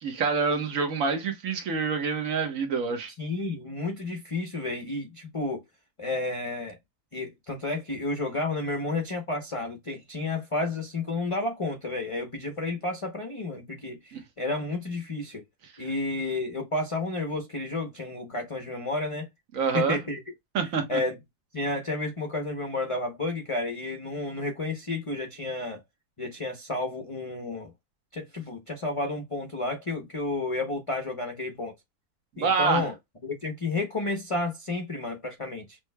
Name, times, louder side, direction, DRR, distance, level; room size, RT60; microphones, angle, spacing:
voice 1, 0.0-3.1 14.1-14.2 19.5-20.0 20.5-21.0 32.4-32.9, right 5 dB, 60° right, 1.5 m, -27 dB
voice 2, 3.2-5.6 6.0-6.8 7.1-15.4 15.8-19.3 19.7-20.2 20.9-21.2 21.5-25.8 26.2-27.7 28.1-31.7 32.4-32.9 33.2-35.8, left 2 dB, 30° left, 0.6 m, -31 dB
6.0 x 3.1 x 2.2 m
omnidirectional pair, 1.7 m